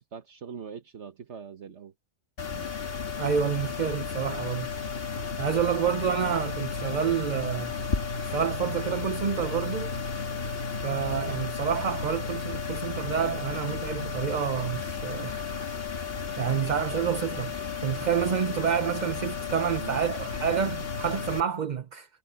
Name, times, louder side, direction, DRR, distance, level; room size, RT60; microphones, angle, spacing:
voice 1, 0.0-1.9 19.8-20.0, right 6 dB, 70° right, 1.5 m, -42 dB
sound 1, 2.4-21.4, left 5 dB, 55° left, 1.9 m, -33 dB
voice 2, 3.2-4.7 5.4-7.8 8.2-9.9 10.8-15.4 16.4-17.5 17.8-22.1, right 7 dB, 40° right, 0.9 m, -28 dB
omnidirectional pair, 1.2 m